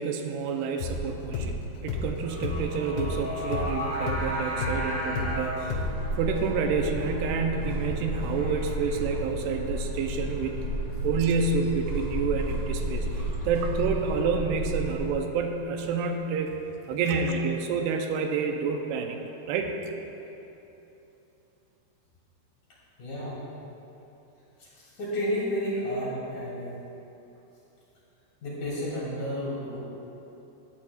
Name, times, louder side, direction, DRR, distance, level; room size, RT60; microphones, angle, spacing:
voice 1, 0.0-5.9 6.2-10.6 11.0-16.5 16.9-19.2 19.5-19.7, right 5 dB, 85° right, 3 dB, 2.7 m, -29 dB
sound 1, 0.8-5.4 5.7-5.9, left 3 dB, 85° left, 3.3 m, -32 dB
Singing, 2.3-9.4, equal, 10° left, 1.9 m, -36 dB
sound 2, 5.6-15.1, equal, 20° right, 1.8 m, -32 dB
voice 2, 23.0-23.4 24.6-26.8 28.4-29.8, equal, 50° left, -7 dB, 3.9 m, -31 dB
16.5 x 12.0 x 2.4 m, 2.9 s
omnidirectional pair, 4.8 m